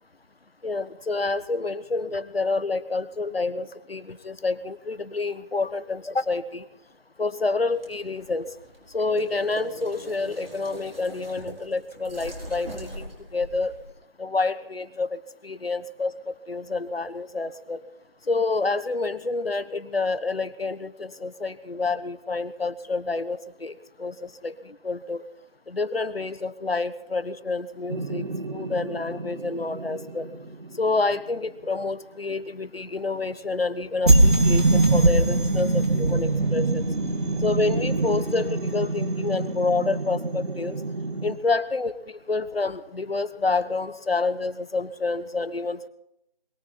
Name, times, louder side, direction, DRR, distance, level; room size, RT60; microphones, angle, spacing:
voice 1, 0.6-6.6 7.2-8.5 8.9-13.7 14.2-16.1 16.5-17.8 18.3-23.7 24.0-25.2 25.7-28.2 28.5-30.3 30.8-36.8 37.4-40.8 41.2-45.9, left 3 dB, 85° left, 14 dB, 1.2 m, -28 dB
sound 1, 7.7-13.9, right 1 dB, 75° right, 4.8 m, -41 dB
sound 2, 27.9-31.0 34.1-41.4, right 2 dB, 60° right, 2.3 m, -24 dB
22.0 x 14.5 x 4.3 m, 0.82 s
figure-of-eight pair, 170°, 29 cm